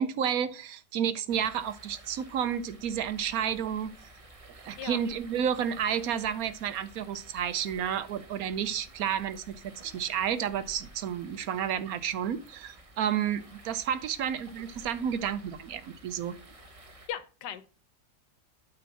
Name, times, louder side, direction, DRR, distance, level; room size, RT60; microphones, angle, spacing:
voice 1, 0.0-3.9 4.6-16.3, right 8 dB, 70° right, 1.0 m, -31 dB
sound 1, 1.3-17.1, right 2 dB, 25° right, 1.1 m, -52 dB
voice 2, 17.1-17.7, left 10 dB, 90° left, 1.4 m, -37 dB
8.6 x 3.5 x 6.0 m
omnidirectional pair, 1.7 m